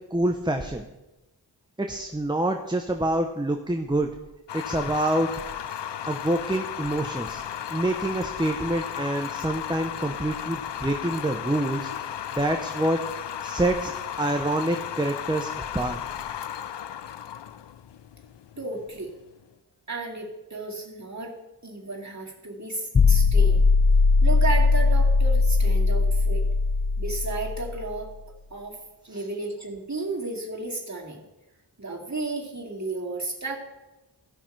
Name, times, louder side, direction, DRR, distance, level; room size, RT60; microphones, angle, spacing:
voice 1, 0.1-0.9 1.8-4.1 4.5-5.3 6.1-7.4 7.7-11.9 12.3-13.0 13.4-13.9 14.2-15.5 15.7-16.0 29.1-29.2, right 1 dB, 10° right, 4 dB, 0.7 m, -26 dB
sound 1, 4.5-19.4, left 9 dB, 80° left, 0.5 m, -35 dB
voice 2, 18.6-19.1 19.9-21.4 21.6-23.7 24.2-26.4 27.0-28.1 28.5-28.8 29.0-31.2 31.8-33.6, right 3 dB, 40° right, -2 dB, 2.3 m, -33 dB
sound 2, 22.9-28.0, left 4 dB, 25° left, 0.4 m, -20 dB
16.0 x 5.9 x 4.5 m, 1.0 s
wide cardioid pair, 55°, 42 cm